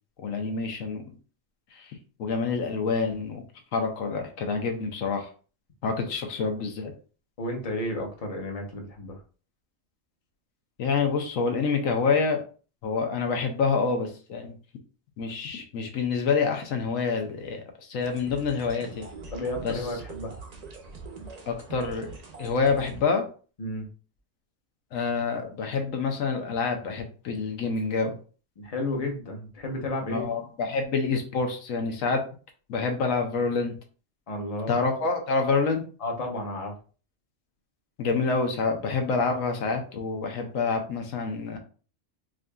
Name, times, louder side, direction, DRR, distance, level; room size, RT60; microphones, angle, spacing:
voice 1, 0.2-1.0 1.7-1.9 2.2-3.4 3.7-5.3 5.8-6.9 10.8-12.4 12.8-14.5 15.2-19.1 19.6-19.8 21.5-22.1 22.4-23.2 24.9-28.1 30.1-32.2 32.7-33.7 34.7-35.8 38.0-41.6, left 4 dB, 90° left, 4 dB, 1.2 m, -27 dB
voice 2, 7.4-9.2 19.3-20.3 23.6-23.9 28.6-30.3 34.3-34.8 36.0-36.7, left 1 dB, 35° left, 1 dB, 0.8 m, -32 dB
sound 1, 18.0-23.0, right 4 dB, 50° right, 0.5 m, -43 dB
4.7 x 2.6 x 2.3 m, 0.38 s
omnidirectional pair, 1.3 m